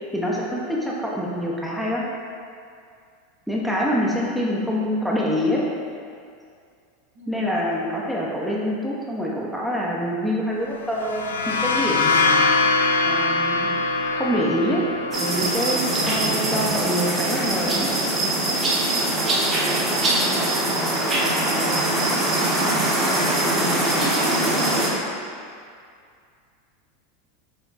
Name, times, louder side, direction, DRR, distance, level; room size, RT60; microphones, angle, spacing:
voice 1, 0.1-2.0 3.5-5.6 7.3-12.5 13.0-13.7 14.1-14.8 15.2-17.9, equal, ahead, -5 dB, 0.7 m, -25 dB
sound 1, 10.9-18.5, left 3 dB, 85° left, 0.3 m, -24 dB
sound 2, 15.1-24.9, right 1 dB, 30° right, 1.1 m, -22 dB
voice 2, 19.2-23.4 24.0-24.9, right 1 dB, 85° right, -6 dB, 1.3 m, -37 dB
5.7 x 2.2 x 4.0 m, 2.3 s
hypercardioid pair, 95°, 0 cm